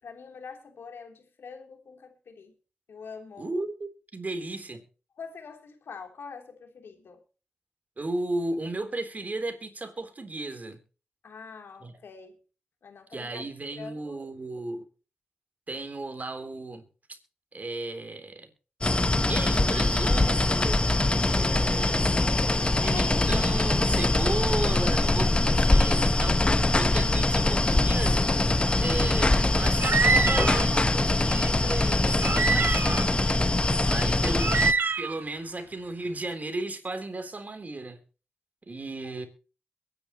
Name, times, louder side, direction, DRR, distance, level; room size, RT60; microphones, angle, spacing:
voice 1, 0.0-2.5 2.9-3.5 5.2-7.2 11.2-12.4 12.8-14.2 22.4-23.3 33.8-34.6 39.0-39.2, left 5 dB, 80° left, 4 dB, 3.3 m, -44 dB
voice 2, 3.4-4.8 8.0-10.8 11.8-11.9 13.1-14.8 15.7-16.8 17.5-18.5 19.3-20.8 21.3-22.1 22.8-26.4 26.8-28.3 28.8-33.4 33.9-34.7 35.0-38.0 38.7-39.3, right 2 dB, 45° right, 7 dB, 3.7 m, -35 dB
sound 1, 18.8-34.7, left 2 dB, 30° left, 1.1 m, -23 dB
sound 2, 29.8-30.7 31.2-31.3 32.2-33.0 33.8-33.9 34.3-35.2, right 4 dB, 65° right, 0.9 m, -25 dB
23.0 x 10.5 x 3.1 m, 0.36 s
cardioid pair, 50°, 4 cm